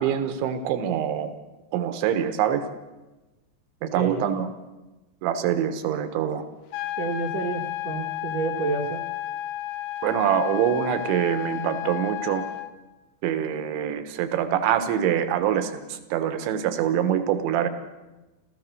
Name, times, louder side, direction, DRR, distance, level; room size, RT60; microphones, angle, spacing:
voice 1, 0.0-1.3 1.7-2.7 3.8-4.5 5.2-6.4 10.0-12.5 13.2-17.7, right 9 dB, 80° right, 10 dB, 3.7 m, -25 dB
voice 2, 3.8-4.2 7.0-9.0, right 3 dB, 65° right, 1 dB, 1.7 m, -29 dB
sound 1, 6.7-12.7, left 13 dB, 75° left, 2.9 m, -32 dB
28.5 x 14.5 x 6.8 m, 1.1 s
omnidirectional pair, 5.3 m